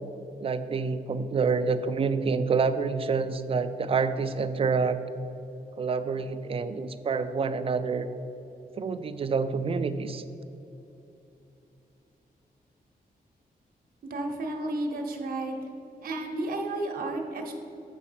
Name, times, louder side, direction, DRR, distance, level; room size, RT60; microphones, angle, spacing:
voice 1, 0.4-5.0 5.8-8.1 8.8-10.2, right 5 dB, 35° right, 10 dB, 0.4 m, -27 dB
voice 2, 14.1-15.5 16.0-17.5, right 2 dB, 70° right, 1 dB, 0.9 m, -32 dB
7.2 x 5.4 x 5.6 m, 2.9 s
wide cardioid pair, 160°, 16 cm